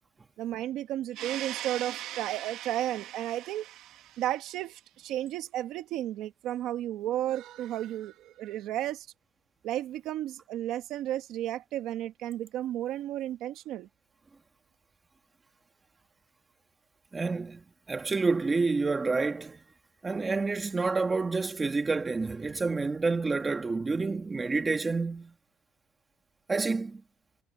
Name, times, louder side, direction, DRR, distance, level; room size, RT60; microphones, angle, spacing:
voice 1, 0.4-9.1 9.6-13.9, right 13 dB, 60° right, 1.5 m, -33 dB
voice 2, 17.1-19.6 20.0-25.3 26.5-27.0, right 3 dB, 15° right, 1.6 m, -29 dB
cardioid pair, 165°, 0 cm